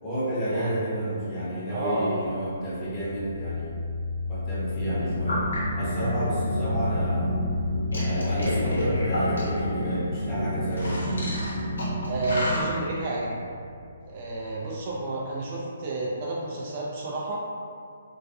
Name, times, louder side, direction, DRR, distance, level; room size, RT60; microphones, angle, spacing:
voice 1, 0.0-3.9 4.3-5.5 5.7-7.4 7.9-11.3, equal, 20° left, -10 dB, 0.8 m, -31 dB
voice 2, 0.5-0.9 1.7-2.3 12.0-13.4 14.1-17.4, right 2 dB, 40° right, -4 dB, 0.4 m, -31 dB
sound 1, 2.5-15.0, left 4 dB, 45° left, 0.7 m, -34 dB
sound 2, 4.7-12.6, equal, 90° left, 0.7 m, -29 dB
2.3 x 2.2 x 2.6 m, 2.3 s
hypercardioid pair, 150°, 0 cm